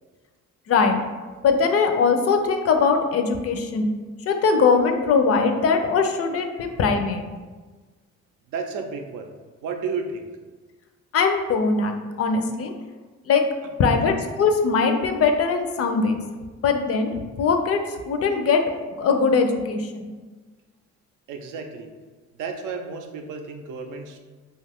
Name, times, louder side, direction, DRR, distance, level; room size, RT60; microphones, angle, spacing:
voice 1, 0.7-1.0 1.4-3.9 4.3-7.2 11.1-12.7 13.3-13.5 13.8-16.2 16.6-18.7 19.0-20.1, left 5 dB, 50° left, 5 dB, 0.4 m, -21 dB
voice 2, 8.5-9.3 9.6-10.3 13.9-14.1 21.3-21.9 22.4-24.2, right 5 dB, 80° right, 5 dB, 0.5 m, -32 dB
2.6 x 2.3 x 3.4 m, 1.3 s
cardioid pair, 90°, 30 cm